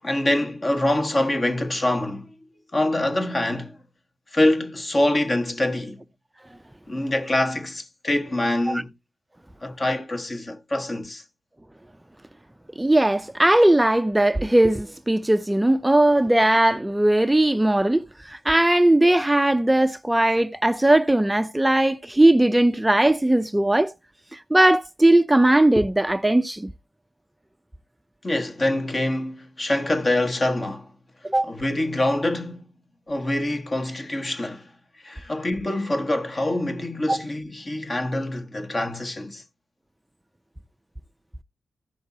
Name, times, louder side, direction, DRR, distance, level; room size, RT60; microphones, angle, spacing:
voice 1, 0.0-2.3 2.7-3.8 4.3-6.0 6.9-8.9 9.6-11.2 28.2-30.9 31.5-32.7 33.1-34.7 35.0-39.4, left 1 dB, 35° left, 1.6 m, -25 dB
voice 2, 12.8-23.9 24.3-26.7 31.2-31.5 37.1-37.2, right 1 dB, 10° right, 0.5 m, -19 dB
15.0 x 5.8 x 2.8 m
cardioid pair, 50°, 0 cm